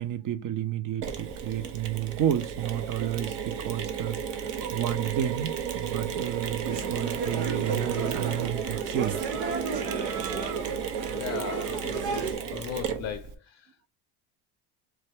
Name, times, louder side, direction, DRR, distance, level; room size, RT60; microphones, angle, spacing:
voice 1, 0.0-4.2 4.7-9.2, right 11 dB, 45° right, 0.6 m, -31 dB
Mechanisms, 1.0-13.3, right 7 dB, 60° right, 1.1 m, -33 dB
sound 1, 6.6-12.3, right 4 dB, 85° right, 1.3 m, -34 dB
voice 2, 11.0-13.9, left 9 dB, 35° left, 0.5 m, -38 dB
4.5 x 2.3 x 4.4 m
supercardioid pair, 100°, 47 cm